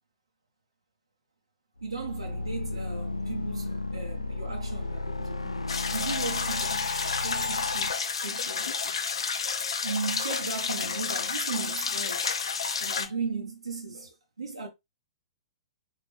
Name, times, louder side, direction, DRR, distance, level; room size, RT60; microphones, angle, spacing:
sound 1, 1.8-7.9, left 2 dB, 85° left, 0.3 m, -33 dB
voice 1, 1.8-9.0 9.8-12.3 12.8-14.7, right 4 dB, 80° right, 0.9 m, -37 dB
sound 2, 5.7-13.1, left 5 dB, 65° left, 0.7 m, -31 dB
4.2 x 3.7 x 3.2 m
figure-of-eight pair, 110°, 3 cm